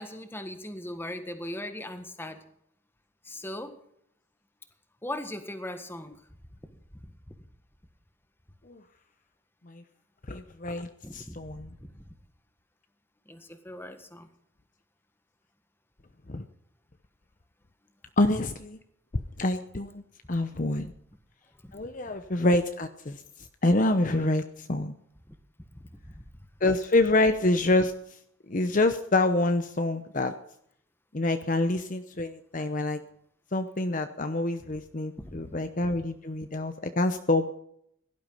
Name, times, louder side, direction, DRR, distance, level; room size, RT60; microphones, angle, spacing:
voice 1, 0.0-2.4 3.2-3.8 5.0-6.2 7.0-7.3 11.0-12.0 13.3-14.3 20.5-20.6 21.6-21.8 25.7-26.2 35.2-35.4, left 1 dB, 10° left, 8 dB, 1.6 m, -39 dB
voice 2, 10.3-11.7 16.3-16.4 18.2-18.8 19.4-20.0 20.3-20.9 21.7-23.2 23.6-24.9 26.6-27.9 28.5-30.3 31.1-33.0 33.5-37.5, left 2 dB, 40° left, 8 dB, 0.8 m, -26 dB
17.0 x 12.0 x 5.6 m, 0.71 s
head